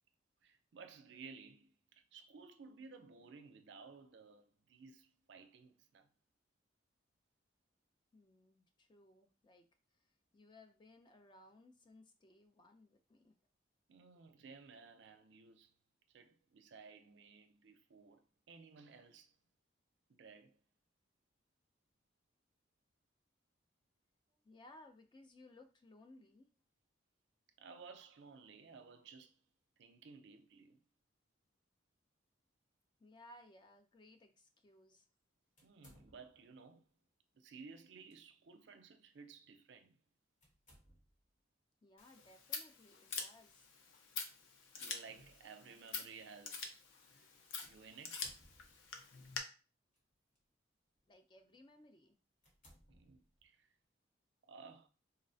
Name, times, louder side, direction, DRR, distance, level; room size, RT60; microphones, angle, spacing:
voice 1, 0.4-6.1 13.9-15.7 16.1-19.3 20.1-20.6 27.6-29.4 29.8-30.8 35.6-36.9 37.3-40.0 44.8-46.8 47.1-47.3 47.6-48.3 52.9-53.7 54.5-54.9, right 5 dB, 65° right, 0.4 m, -57 dB
voice 2, 8.1-9.7 9.9-13.3 24.4-26.5 33.0-35.1 41.8-43.7 51.1-52.1, left 1 dB, 25° left, 0.3 m, -62 dB
sound 1, 35.6-36.6 37.8-38.2 38.7-38.8 40.4-41.3 43.4-43.7 44.5-44.6 47.6-49.0 49.9-50.4 51.0-51.2 51.7-51.8 52.4-53.6, equal, 40° left, 1.1 m, -65 dB
Scissors, 42.0-49.4, left 5 dB, 85° left, 0.5 m, -47 dB
3.8 x 2.1 x 2.6 m
head